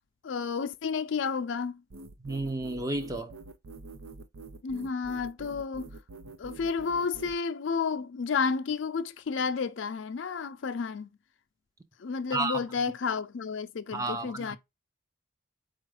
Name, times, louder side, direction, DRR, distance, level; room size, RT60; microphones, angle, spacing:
voice 1, 0.2-1.8 4.6-5.9 6.4-11.1 12.0-14.6, left 5 dB, 60° left, 0.4 m, -31 dB
sound 1, 1.9-7.4, right 3 dB, 80° right, 0.5 m, -46 dB
voice 2, 2.2-3.3 12.3-12.6 13.9-14.6, right 2 dB, 15° right, 0.5 m, -32 dB
4.3 x 2.5 x 4.7 m
head